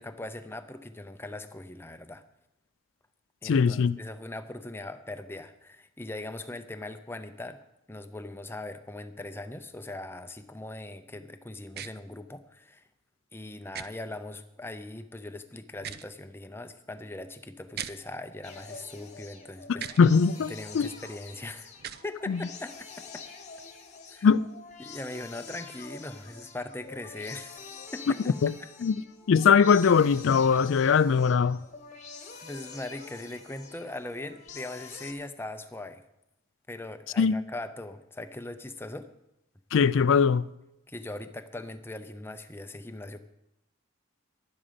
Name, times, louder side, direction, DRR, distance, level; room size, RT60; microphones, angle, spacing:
voice 1, 0.0-2.2 3.4-7.6 7.9-12.8 13.3-19.9 20.5-21.7 22.0-22.9 23.1-23.2 24.1-24.3 24.8-27.6 27.9-28.3 32.4-36.0 36.7-39.1 40.9-43.2, left 2 dB, 10° left, 0.6 m, -40 dB
voice 2, 3.4-4.0 20.0-20.9 22.3-22.4 24.2-24.5 28.4-28.5 28.8-28.9 29.3-31.6 37.2-37.3 39.7-40.5, left 6 dB, 60° left, 0.4 m, -21 dB
sound 1, 11.7-11.9 13.7-13.9 15.7-16.1 17.7-17.9 19.7-20.0 21.7-22.0, right 10 dB, 45° right, 0.5 m, -38 dB
sound 2, 18.4-35.1, left 5 dB, 35° left, 1.2 m, -46 dB
11.5 x 11.0 x 5.1 m
head